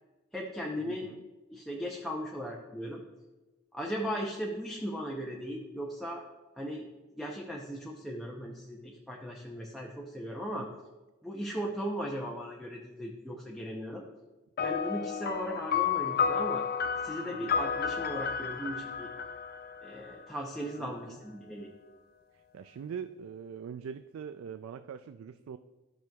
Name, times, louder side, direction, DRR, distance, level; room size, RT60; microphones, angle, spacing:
voice 1, 0.3-1.1 1.5-3.0 3.7-6.2 6.6-6.9 7.2-10.7 11.2-14.0 14.6-16.6 17.0-19.1 19.8-21.7, equal, ahead, -3 dB, 0.6 m, -37 dB
voice 2, 0.9-1.2 10.5-10.8 17.2-17.5 20.8-21.2 22.3-25.6, right 7 dB, 80° right, 11 dB, 0.3 m, -43 dB
sound 1, 14.6-20.3, left 6 dB, 50° left, 0.4 m, -32 dB
13.0 x 6.0 x 2.3 m, 1.1 s
head